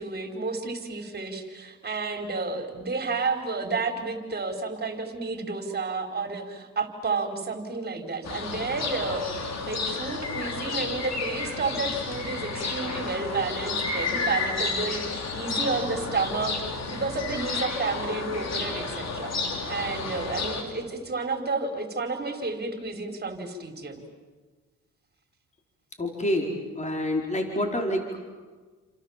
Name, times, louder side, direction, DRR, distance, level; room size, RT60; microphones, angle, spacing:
voice 1, 0.0-9.2 9.7-19.3 19.7-24.0, right 3 dB, 35° right, 4 dB, 5.0 m, -31 dB
sound 1, 8.2-20.6, left 4 dB, 60° left, 4.7 m, -31 dB
voice 2, 26.0-28.2, left 1 dB, 25° left, 2 dB, 4.7 m, -27 dB
29.5 x 26.5 x 7.5 m, 1.3 s
cardioid pair, 90°, 30 cm